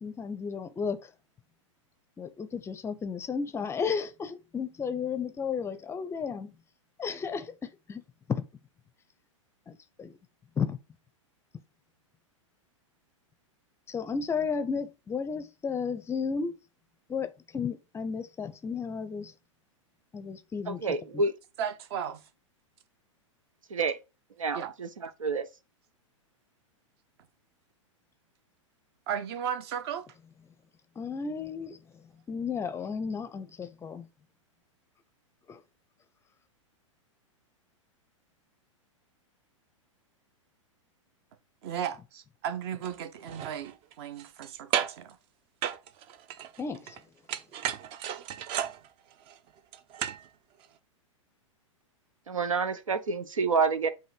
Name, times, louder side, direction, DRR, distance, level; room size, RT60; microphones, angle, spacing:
voice 1, 0.0-1.1 2.2-6.5 7.0-8.0 8.3-8.4 9.7-10.2 10.6-10.8 13.9-16.6 17.1-19.3 20.1-20.9 21.1-21.2 31.0-34.1 35.5-35.6 46.6-47.0, left 6 dB, 15° left, 0.6 m, -33 dB
voice 2, 20.7-21.3 23.7-24.0 24.4-25.5 52.3-53.9, right 4 dB, 80° right, 0.8 m, -28 dB
voice 3, 21.6-22.3 24.5-24.7 29.1-30.1 41.6-45.2, right 8 dB, 50° right, 1.0 m, -35 dB
sound 1, 42.8-43.0 43.3-44.5 44.7-45.1 45.6-47.0 47.3-50.3 50.6-50.7, right 10 dB, 35° right, 0.6 m, -34 dB
7.8 x 2.6 x 5.0 m
figure-of-eight pair, 105°, 17 cm